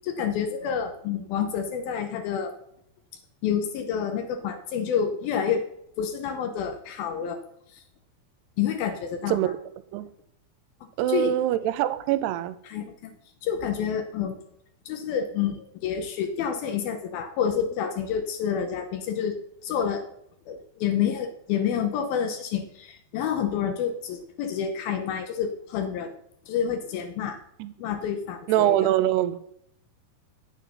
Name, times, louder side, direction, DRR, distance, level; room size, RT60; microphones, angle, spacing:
voice 1, 0.1-2.5 3.4-5.7 6.0-7.4 7.7-7.8 8.6-9.5 11.1-11.6 12.7-13.1 13.4-14.4 14.9-20.1 20.5-26.1 26.5-27.4 27.8-28.9, left 8 dB, 75° left, 2.6 m, -28 dB
voice 2, 11.0-12.6 27.6-27.7 28.5-29.4, right 13 dB, 90° right, 2.8 m, -23 dB
9.5 x 9.2 x 5.5 m
omnidirectional pair, 4.6 m